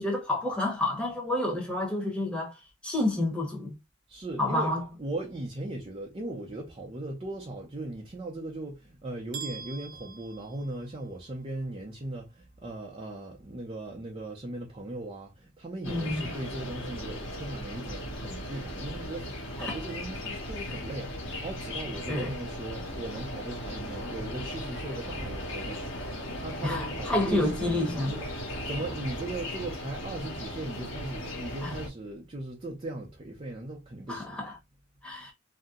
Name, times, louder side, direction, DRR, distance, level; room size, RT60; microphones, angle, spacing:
voice 1, 0.0-2.5 2.8-3.8 4.4-4.8 15.9-16.3 19.6-19.8 22.1-22.3 26.6-28.1 31.6-31.7 34.1-34.5 35.0-35.3, left 1 dB, 5° left, 0.9 m, -29 dB
voice 2, 4.1-25.9 26.4-34.5, right 2 dB, 30° right, 0.6 m, -38 dB
sound 1, 9.3-11.3, right 6 dB, 75° right, 0.7 m, -43 dB
sound 2, 15.8-31.9, left 1 dB, 65° left, 1.3 m, -37 dB
2.7 x 2.1 x 3.6 m
head